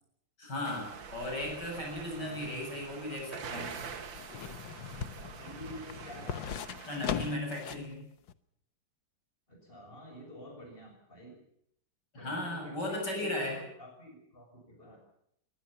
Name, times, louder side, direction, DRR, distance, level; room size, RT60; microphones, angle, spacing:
voice 1, 0.4-3.8 6.9-8.0 12.1-13.6, left 1 dB, 65° left, 1 dB, 8.1 m, -36 dB
sound 1, 0.6-7.3, right 6 dB, 80° right, 2.4 m, -45 dB
voice 2, 2.0-2.8 4.9-6.7 9.5-11.4 12.2-15.0, equal, 30° left, 2 dB, 7.2 m, -49 dB
sound 2, 2.8-7.9 8.3-8.4, left 9 dB, 85° left, 1.8 m, -40 dB
23.5 x 19.5 x 7.2 m, 0.74 s
omnidirectional pair, 2.0 m